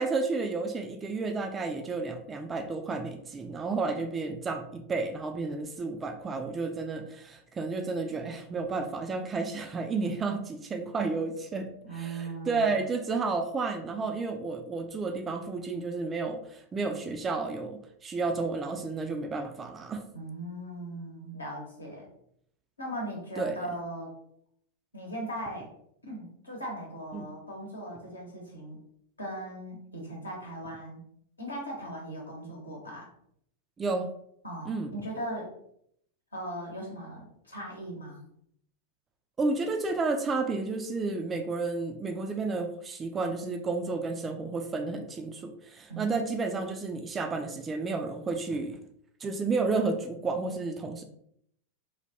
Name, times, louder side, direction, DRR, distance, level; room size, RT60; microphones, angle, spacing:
voice 1, 0.0-20.0 23.4-23.6 27.1-27.3 33.8-34.1 34.7-34.9 39.4-48.8 49.2-51.0, right 3 dB, 20° right, 5 dB, 0.3 m, -31 dB
voice 2, 11.8-12.7 20.1-22.1 22.8-24.1 24.9-25.7 26.0-28.8 29.2-31.0 31.4-33.1 34.4-35.5 36.3-38.2 45.9-46.2, right 1 dB, 80° left, -1 dB, 0.9 m, -38 dB
3.2 x 2.2 x 2.7 m, 0.70 s
figure-of-eight pair, 90°, 0 cm